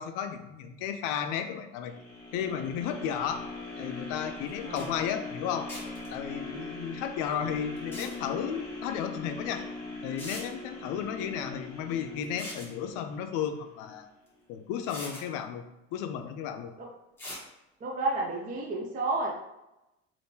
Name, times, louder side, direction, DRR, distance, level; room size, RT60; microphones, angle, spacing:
voice 1, 0.0-2.0 2.3-3.4 3.8-5.7 6.1-9.6 10.0-14.1 14.5-15.7 15.9-16.7, left 8 dB, 80° left, 7 dB, 0.5 m, -33 dB
sound 1, 1.8-13.9 14.4-14.5, left 3 dB, 30° left, 1.3 m, -41 dB
sound 2, 4.5-4.6 4.8-4.9 5.7-6.1 7.8-8.1 9.5-9.6 10.2-10.5 12.2-12.7 14.3-14.4 14.9-15.2 17.2-17.4, left 1 dB, 5° left, 1.0 m, -41 dB
voice 2, 4.6-5.0 16.8-16.9 17.8-19.3, right 2 dB, 25° right, -2 dB, 0.5 m, -31 dB
3.5 x 2.6 x 2.7 m, 0.93 s
cardioid pair, 155°, 31 cm